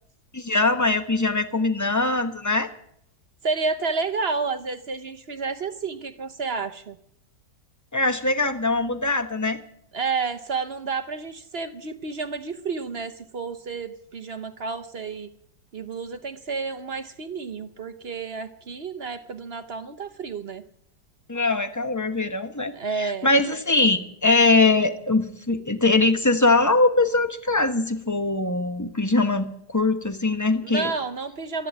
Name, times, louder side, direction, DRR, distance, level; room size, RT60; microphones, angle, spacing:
voice 1, 0.3-2.7 7.9-9.6 21.3-30.9, left 3 dB, 15° left, 9 dB, 0.7 m, -22 dB
voice 2, 3.4-7.0 9.9-15.3 15.7-20.6 22.7-23.3 30.6-31.7, right 4 dB, 45° right, 10 dB, 0.8 m, -30 dB
14.0 x 11.5 x 8.7 m, 0.70 s
omnidirectional pair, 1.9 m